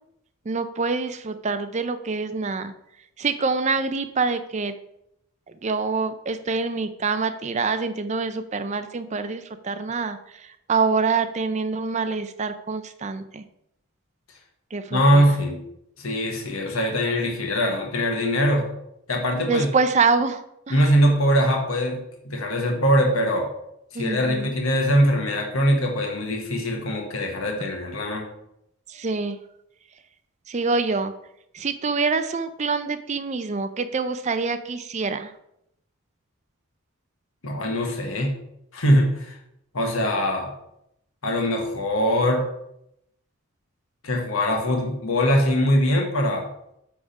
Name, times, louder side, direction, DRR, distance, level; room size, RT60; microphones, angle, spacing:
voice 1, 0.5-2.7 3.2-4.7 5.6-13.4 14.7-15.3 19.4-20.8 23.9-24.5 28.9-29.4 30.5-31.1 31.5-35.3, right 4 dB, 30° right, 10 dB, 0.4 m, -26 dB
voice 2, 14.9-15.6 16.0-18.7 19.1-19.7 20.7-23.5 23.9-28.3 37.4-38.4 38.7-39.4 39.7-40.5 41.2-42.5 44.0-46.5, equal, 70° left, 1 dB, 1.3 m, -22 dB
8.6 x 3.6 x 5.3 m, 0.79 s
head